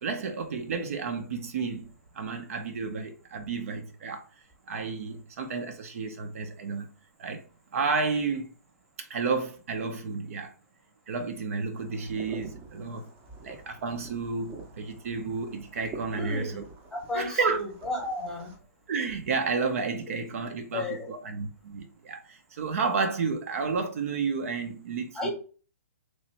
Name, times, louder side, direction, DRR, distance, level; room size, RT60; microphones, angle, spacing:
voice 1, 0.0-4.2 4.7-6.9 7.2-7.4 7.7-8.5 9.0-10.5 11.1-13.1 13.4-16.6 17.1-17.6 18.9-25.3, right 4 dB, 60° right, 0.7 m, -31 dB
sound 1, 11.8-18.6, right 3 dB, 20° right, 0.8 m, -47 dB
voice 2, 16.1-16.6 16.9-18.5 20.7-21.1 25.1-25.3, left 1 dB, 5° left, 0.9 m, -33 dB
3.1 x 2.7 x 4.0 m
hypercardioid pair, 160°, 9 cm